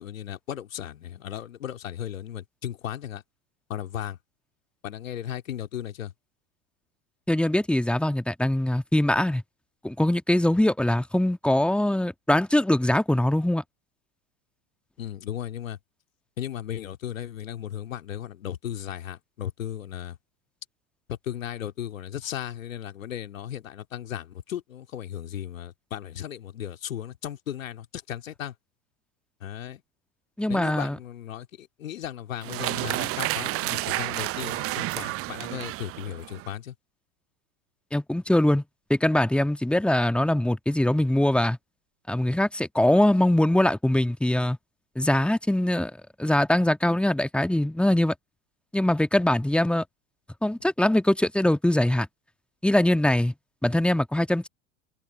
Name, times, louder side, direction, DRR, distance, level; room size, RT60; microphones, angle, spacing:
voice 1, 0.0-3.2 3.7-4.2 4.8-6.1 15.0-15.8 16.4-20.2 21.1-28.5 29.4-29.8 30.5-36.7, left 10 dB, 70° left, 2.6 m, -36 dB
voice 2, 7.3-9.4 9.8-13.6 30.4-31.0 37.9-38.6 38.9-41.6 42.1-44.6 44.9-45.9 46.2-48.1 48.7-49.8 50.4-52.1 52.6-53.3 53.6-54.5, left 1 dB, 5° left, 1.6 m, -22 dB
sound 1, 32.4-36.5, right 19 dB, 35° right, 0.7 m, -30 dB
figure-of-eight pair, 80°, 41 cm